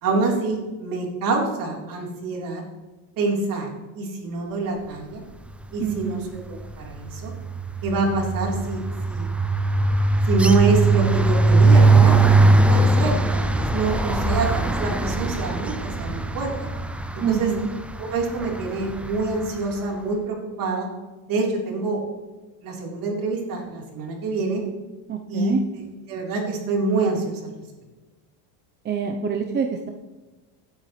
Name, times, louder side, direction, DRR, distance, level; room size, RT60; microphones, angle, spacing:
voice 1, 0.0-2.6 3.2-3.7 4.0-5.2 5.7-6.4 6.8-7.3 7.8-9.3 10.2-16.7 17.1-17.5 18.1-20.9 21.3-22.0 22.6-24.6 25.3-25.6 26.1-27.5, right 3 dB, 45° right, -1 dB, 3.9 m, -26 dB
sound 1, 5.7-6.1 6.4-19.5, right 3 dB, 5° right, 0.3 m, -20 dB
voice 2, 5.8-6.2 17.2-17.7 25.1-25.6 28.8-29.9, right 6 dB, 25° right, 3 dB, 0.8 m, -26 dB
16.5 x 9.4 x 3.3 m, 1.2 s
supercardioid pair, 135°, 45 cm